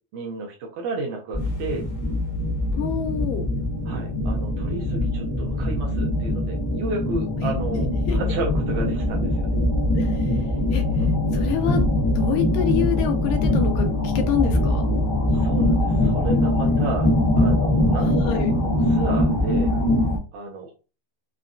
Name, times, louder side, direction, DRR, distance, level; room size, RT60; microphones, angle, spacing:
voice 1, 0.1-1.8 3.9-9.6 15.3-17.1 17.4-19.7 20.3-20.7, right 3 dB, 75° right, 1 dB, 1.8 m, -32 dB
sound 1, 1.3-20.2, left 1 dB, 25° left, 0.8 m, -22 dB
voice 2, 2.7-3.5 8.1-8.2 9.9-10.4 10.7-11.9 12.2-14.8 18.0-18.6, left 8 dB, 80° left, 5 dB, 2.0 m, -27 dB
5.7 x 2.2 x 2.5 m, 0.33 s
omnidirectional pair, 3.9 m